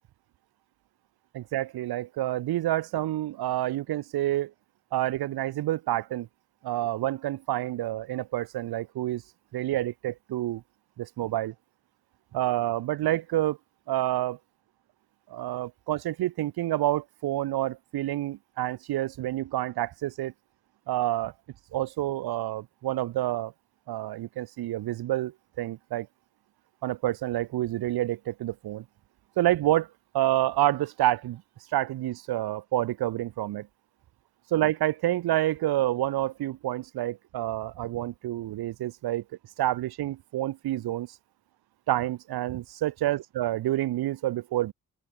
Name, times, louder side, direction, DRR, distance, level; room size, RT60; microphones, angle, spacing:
voice 1, 1.3-4.5 4.9-6.3 6.6-9.2 9.5-10.6 11.0-11.5 12.3-13.6 13.9-14.4 15.3-20.3 20.9-21.3 21.7-23.5 23.9-26.1 26.8-28.8 29.4-29.9 30.1-31.4 31.7-33.7 34.5-39.2 39.6-41.2 41.9-44.7, right 14 dB, 90° right, 0.6 m, -28 dB
open air
cardioid pair, 70°, 36 cm